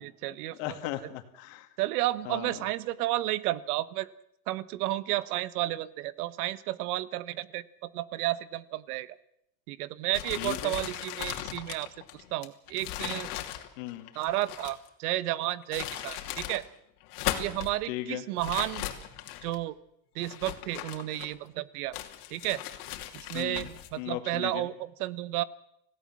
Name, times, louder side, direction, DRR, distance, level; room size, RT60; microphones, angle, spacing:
voice 1, 0.0-0.6 1.8-4.1 4.5-9.2 9.7-13.3 14.1-16.6 17.4-18.8 19.4-19.8 20.1-22.0 22.3-22.6 23.1-25.4, right 16 dB, 80° right, 18 dB, 1.2 m, -32 dB
voice 2, 0.5-1.7 2.2-2.6 10.4-10.8 13.8-14.1 17.9-18.2 23.3-23.7 24.0-24.7, left 14 dB, 60° left, 8 dB, 2.5 m, -37 dB
sound 1, 10.1-14.9 15.5-16.6 17.0-17.8 18.4-19.6 20.2-21.5 21.9-23.9, left 13 dB, 90° left, 2.9 m, -38 dB
27.0 x 17.0 x 7.5 m, 0.75 s
cardioid pair, 180°, 44 cm